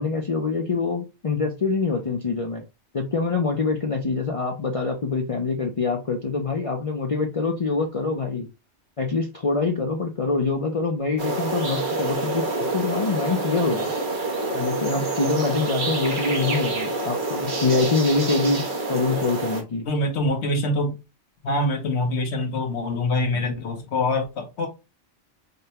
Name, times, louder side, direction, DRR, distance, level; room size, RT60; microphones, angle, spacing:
voice 1, 0.0-2.6 2.9-8.5 9.0-13.9 14.5-18.6 18.9-19.8, left 4 dB, 40° left, 0.5 m, -25 dB
sound 1, 11.2-19.6, right 2 dB, 45° right, 1.0 m, -27 dB
voice 2, 19.9-20.9 21.4-24.7, left 1 dB, 70° left, 1.1 m, -24 dB
5.2 x 2.2 x 2.8 m
omnidirectional pair, 1.2 m